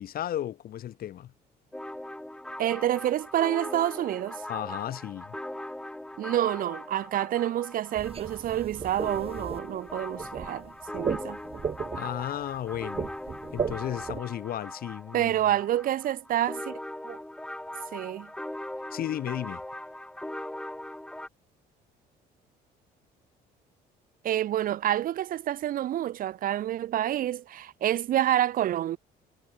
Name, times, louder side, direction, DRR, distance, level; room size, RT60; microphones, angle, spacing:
voice 1, 0.0-1.3 4.5-5.4 12.0-13.1 13.5-15.3 18.9-19.6, left 11 dB, 60° left, 5.3 m, -34 dB
sound 1, 1.7-21.3, left 1 dB, 5° left, 2.1 m, -40 dB
voice 2, 2.6-4.4 6.2-11.4 15.1-16.8 17.0-17.2 17.9-18.3 24.2-29.0, right 12 dB, 55° right, 0.7 m, -28 dB
sound 2, 7.9-14.2, right 6 dB, 35° right, 6.3 m, -35 dB
cardioid pair, 110°, 17 cm